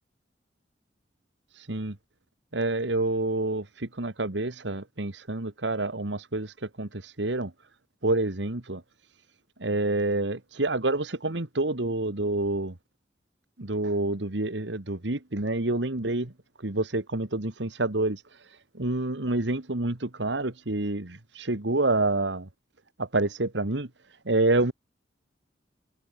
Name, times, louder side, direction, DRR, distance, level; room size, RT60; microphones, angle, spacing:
voice 1, 2.5-7.5 8.0-8.8 9.6-12.7 13.6-16.3 16.6-18.2 18.8-22.5 23.0-23.9 24.3-24.7, right 2 dB, 75° right, 1.9 m, -28 dB
head